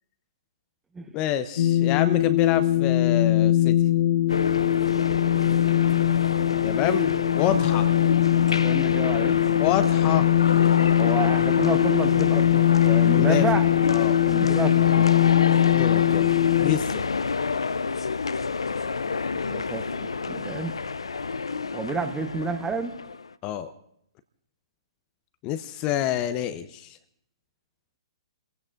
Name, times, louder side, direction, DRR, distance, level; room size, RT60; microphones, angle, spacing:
voice 1, 1.1-3.8 6.6-7.9 9.6-10.3 13.1-13.4 13.9-14.2 15.7-16.3 16.6-17.1 23.4-23.7 25.4-27.0, left 11 dB, 30° left, 11 dB, 0.6 m, -27 dB
sound 1, 1.6-16.8, left 12 dB, 60° left, 0.9 m, -21 dB
sound 2, 4.3-23.3, left 4 dB, 80° left, 0.5 m, -28 dB
voice 2, 8.6-9.4 11.0-13.6 14.3-15.1 19.3-20.7 21.7-22.9, right 4 dB, 10° right, 8 dB, 1.0 m, -30 dB
29.0 x 16.0 x 2.5 m, 0.72 s
figure-of-eight pair, 125°, 3 cm